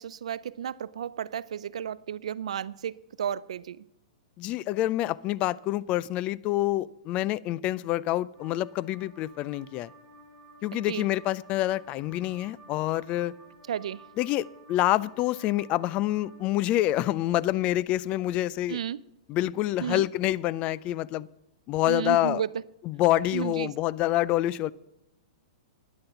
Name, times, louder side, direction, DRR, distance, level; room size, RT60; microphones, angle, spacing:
voice 1, 0.0-3.8 10.7-11.1 13.7-14.0 18.7-19.0 19.8-20.0 21.9-22.5 23.3-23.7, right 9 dB, 75° right, 0.4 m, -33 dB
voice 2, 4.4-9.9 10.6-13.3 14.2-18.8 19.3-21.3 21.7-22.4 22.8-24.7, left 15 dB, 35° left, 0.4 m, -27 dB
sound 1, 8.3-16.4, right 1 dB, 20° left, 6.3 m, -53 dB
11.5 x 10.5 x 5.8 m
hypercardioid pair, 130°, 3 cm